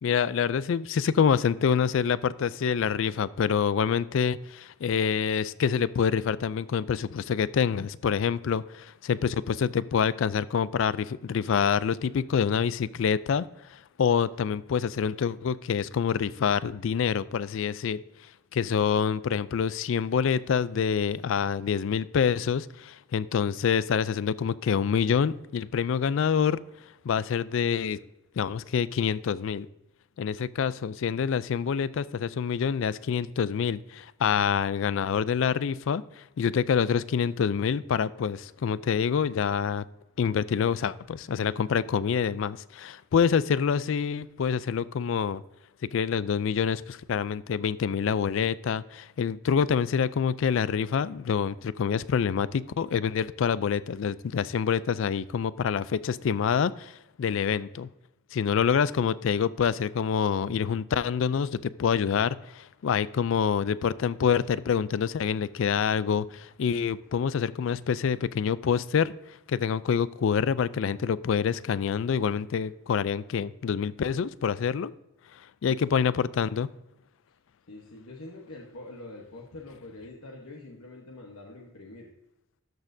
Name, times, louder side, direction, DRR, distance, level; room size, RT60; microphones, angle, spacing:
voice 1, 0.0-18.0 18.5-26.6 27.0-28.0 28.4-29.7 30.2-39.8 40.2-45.4 45.9-57.9 58.3-74.9 75.6-76.7, left 7 dB, 60° left, 0.3 m, -26 dB
voice 2, 75.6-76.0 77.7-82.1, left 2 dB, 80° left, 1.1 m, -45 dB
13.0 x 6.5 x 2.6 m
head